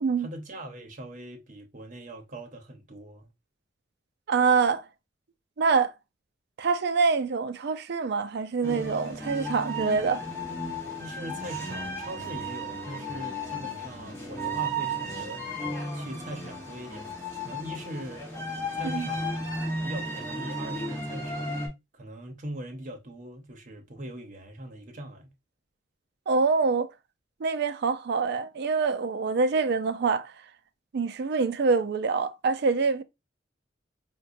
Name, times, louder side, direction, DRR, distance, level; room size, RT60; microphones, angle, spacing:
voice 1, 0.2-3.3 11.0-15.4 15.9-17.2 17.4-18.5 18.7-19.5 19.8-25.3, right 1 dB, 45° right, 0.8 m, -41 dB
voice 2, 4.3-4.9 5.6-5.9 6.6-10.2 18.8-19.1 26.3-26.9 27.4-30.3 30.9-33.0, right 4 dB, 60° right, 0.4 m, -25 dB
sound 1, 8.6-21.7, equal, 15° left, 1.3 m, -34 dB
4.5 x 2.2 x 2.5 m
head